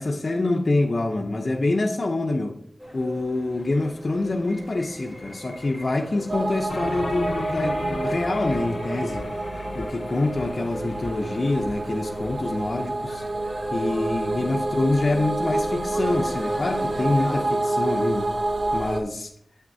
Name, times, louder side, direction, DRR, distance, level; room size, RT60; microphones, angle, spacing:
voice 1, 0.0-2.6 2.9-9.2 9.7-13.2 13.7-18.3 18.7-19.3, left 2 dB, 50° left, 0.6 m, -26 dB
sound 1, 2.8-17.6, equal, 5° right, 1.8 m, -39 dB
sound 2, 6.3-19.0, right 2 dB, 75° right, 0.7 m, -28 dB
sound 3, 6.7-12.4, left 3 dB, 80° left, 0.3 m, -37 dB
7.9 x 5.8 x 2.7 m
wide cardioid pair, 80°, 0 cm